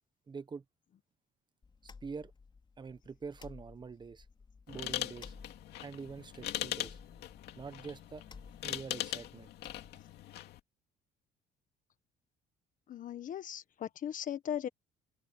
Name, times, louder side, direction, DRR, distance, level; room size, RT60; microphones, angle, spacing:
voice 1, 0.3-0.6 1.8-2.3 2.8-4.3 4.7-5.3 5.8-7.0 7.6-8.2 8.6-9.5, right 5 dB, 25° right, 1.3 m, -45 dB
sound 1, 1.6-10.2, left 4 dB, 30° left, 4.4 m, -56 dB
sound 2, 4.7-10.6, left 13 dB, 75° left, 2.5 m, -41 dB
voice 2, 12.9-14.7, left 10 dB, 50° left, 1.4 m, -38 dB
cardioid pair, 110°, 17 cm